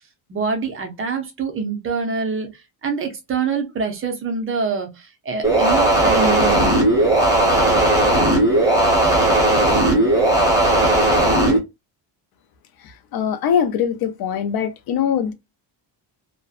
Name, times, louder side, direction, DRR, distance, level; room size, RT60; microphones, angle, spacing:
voice 1, 0.3-6.8, right 5 dB, 30° right, 0.4 m, -25 dB
sound 1, 5.4-11.6, right 1 dB, 10° right, 0.7 m, -16 dB
voice 2, 12.8-15.3, left 8 dB, 55° left, 0.5 m, -22 dB
2.6 x 2.1 x 2.3 m
cardioid pair, 165°, 46 cm